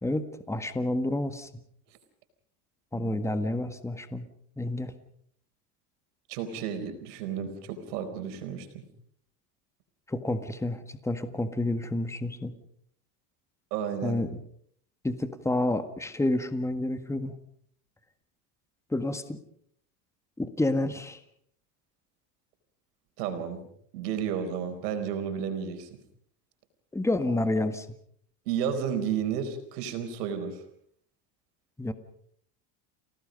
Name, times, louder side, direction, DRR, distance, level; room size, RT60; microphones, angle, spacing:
voice 1, 0.0-1.5 2.9-4.2 4.6-4.9 10.1-12.5 14.0-14.4 15.0-17.4 18.9-19.4 20.4-21.2 26.9-27.9 31.8-31.9, left 1 dB, 5° left, 10 dB, 1.7 m, -29 dB
voice 2, 6.3-8.9 13.7-14.2 23.2-23.6 23.9-26.0 28.5-30.6, right 8 dB, 85° right, 8 dB, 4.6 m, -32 dB
29.5 x 18.0 x 5.3 m, 0.65 s
supercardioid pair, 110°, 46 cm